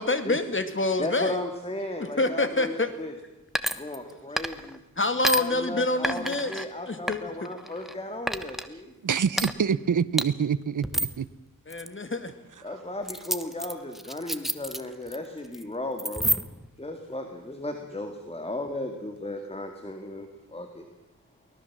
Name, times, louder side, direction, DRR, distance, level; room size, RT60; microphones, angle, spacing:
voice 1, 0.0-1.4 2.2-2.9 5.0-7.5 11.7-12.3, left 2 dB, 35° left, 9 dB, 2.2 m, -27 dB
voice 2, 1.0-3.1 3.7-4.8 5.4-8.9 12.6-16.3 16.8-20.9, left 1 dB, 15° left, 5 dB, 2.2 m, -35 dB
sound 1, 3.5-4.8 5.2-5.4 6.0-6.6 7.1-7.9 8.3-8.7 9.3-9.5 10.2-10.3 10.8-11.2 11.7-11.9 13.1-15.2 15.4-15.6 16.0-16.7, equal, ahead, 1.2 m, -29 dB
voice 3, 9.0-11.3, right 7 dB, 60° right, 17 dB, 0.8 m, -26 dB
24.0 x 18.5 x 7.4 m, 0.96 s
wide cardioid pair, 110°, 34 cm